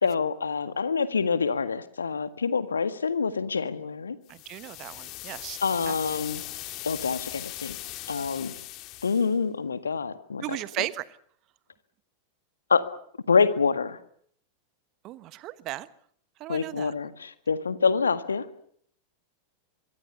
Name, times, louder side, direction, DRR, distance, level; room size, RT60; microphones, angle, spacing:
voice 1, 0.0-4.2 5.6-6.4 6.8-7.8 8.1-8.5 9.0-10.6 12.7-12.9 13.3-14.0 16.5-18.4, left 5 dB, 75° left, 12 dB, 1.7 m, -26 dB
sound 1, 4.3-9.3, left 16 dB, 40° left, 2.3 m, -39 dB
voice 2, 4.3-5.6 5.9-6.0 10.4-11.2 15.0-15.9 16.4-16.9, right 16 dB, 35° right, 17 dB, 1.1 m, -36 dB
25.0 x 22.5 x 6.9 m, 0.62 s
figure-of-eight pair, 90°, 0 cm